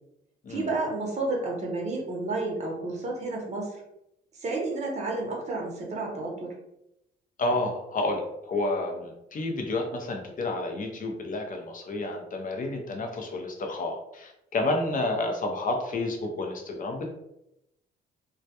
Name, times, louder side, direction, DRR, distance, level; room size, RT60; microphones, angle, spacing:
voice 1, 0.5-3.8 4.4-6.5 14.6-14.9, right 2 dB, 35° right, -1 dB, 0.7 m, -31 dB
voice 2, 7.4-17.1, left 2 dB, 45° left, 3 dB, 0.6 m, -30 dB
2.2 x 2.1 x 2.8 m, 0.84 s
cardioid pair, 90°, 20 cm